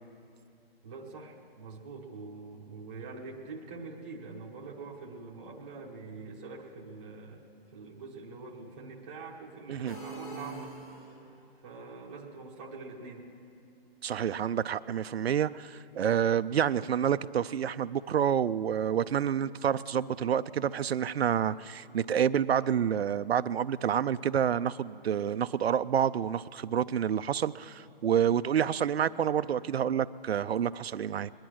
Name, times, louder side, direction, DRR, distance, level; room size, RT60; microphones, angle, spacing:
voice 1, 0.8-7.4 7.7-10.7 11.6-13.2, right 4 dB, 10° right, -4 dB, 0.8 m, -44 dB
sound 1, 9.9-11.4, right 3 dB, 50° left, 4.3 m, -43 dB
voice 2, 14.0-31.3, right 9 dB, 75° right, 13 dB, 0.5 m, -28 dB
21.5 x 10.5 x 6.2 m, 2.4 s
hypercardioid pair, 170°, 31 cm